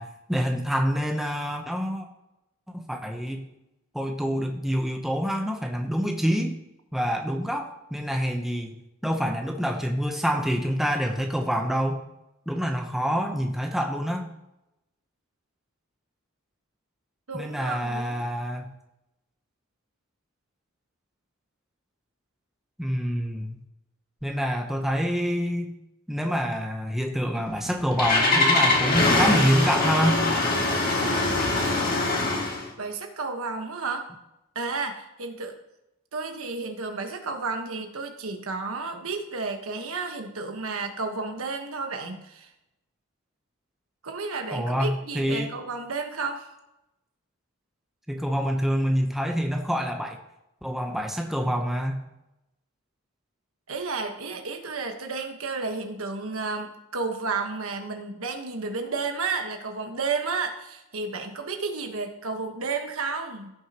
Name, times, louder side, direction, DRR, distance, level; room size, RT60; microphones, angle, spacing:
voice 1, 0.0-2.1 2.7-3.5 3.9-6.5 6.9-8.7 9.0-12.0 12.5-14.3 17.3-18.6 22.8-23.6 24.2-25.7 26.1-30.3 44.5-45.5 48.1-50.2 50.6-52.0, equal, ahead, 2 dB, 0.8 m, -26 dB
voice 2, 17.3-18.2 32.8-34.1 34.5-35.5 36.1-42.5 44.0-46.5 53.7-63.5, right 4 dB, 85° right, 4 dB, 1.3 m, -32 dB
Engine starting, 27.5-32.7, left 2 dB, 45° left, 2.1 m, -23 dB
16.0 x 6.4 x 3.0 m, 0.91 s
head